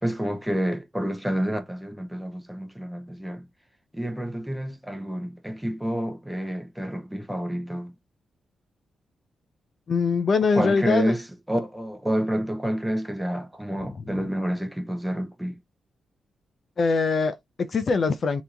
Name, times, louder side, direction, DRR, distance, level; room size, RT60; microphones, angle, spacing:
voice 1, 0.0-3.5 3.9-7.9 10.5-15.5, equal, 5° right, 0.8 m, -29 dB
voice 2, 9.9-11.1 14.0-14.1 16.8-18.4, left 4 dB, 45° left, 0.6 m, -23 dB
3.5 x 3.0 x 3.9 m
cardioid pair, 120°, 0 cm